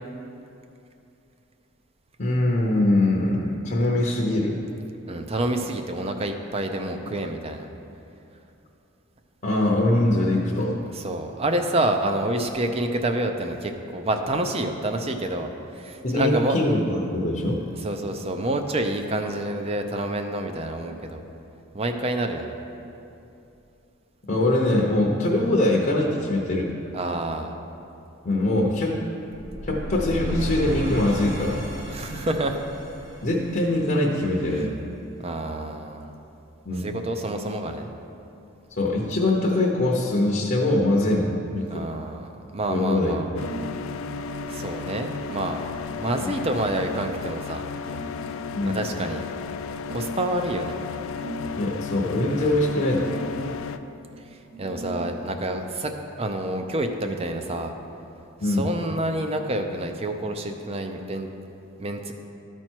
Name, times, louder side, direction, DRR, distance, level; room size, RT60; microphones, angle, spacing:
voice 1, 2.2-4.6 7.0-7.1 9.4-10.8 16.0-17.6 24.3-26.7 28.2-29.0 29.6-31.7 33.2-34.7 36.7-36.9 38.7-41.9 42.7-43.4 46.2-46.3 48.5-48.8 51.6-53.2 58.4-58.7, left 1 dB, 40° left, -2 dB, 0.7 m, -23 dB
voice 2, 5.1-7.7 10.9-16.6 17.8-21.2 21.7-22.5 26.9-27.6 31.9-32.6 34.5-34.6 35.2-36.1 36.7-37.9 41.7-43.3 44.5-45.6 46.0-47.6 48.6-49.2 49.9-50.8 52.4-52.6 54.2-55.9 56.2-57.7 58.4-61.3 61.8-62.1, right 1 dB, 30° right, 5 dB, 0.5 m, -28 dB
sound 1, 29.3-34.3, equal, 55° right, 1.5 m, -33 dB
sound 2, 43.4-53.8, left 5 dB, 75° left, 0.3 m, -34 dB
sound 3, 43.4-43.9 44.2-47.1 47.9-49.1 49.9-51.6 53.1-55.3, right 1 dB, 75° right, 1.3 m, -40 dB
13.0 x 4.5 x 4.5 m, 2.8 s
head